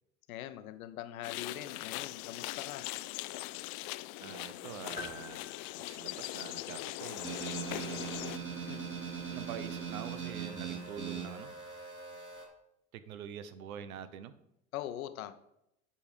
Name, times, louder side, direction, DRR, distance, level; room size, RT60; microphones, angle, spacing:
voice 1, 0.3-2.9 8.6-8.9 14.7-15.3, left 12 dB, 80° left, 10 dB, 0.9 m, -42 dB
sound 1, 1.2-8.4, left 19 dB, 50° left, 0.4 m, -41 dB
voice 2, 4.2-5.5 5.9-8.5 9.3-11.5 12.9-14.3, right 8 dB, 85° right, 13 dB, 0.9 m, -46 dB
sound 2, 5.0-6.8, left 3 dB, 20° left, 1.4 m, -47 dB
sound 3, 7.2-12.5, right 6 dB, 30° right, 3.2 m, -40 dB
8.6 x 5.5 x 5.0 m, 0.82 s
hypercardioid pair, 95°, 41 cm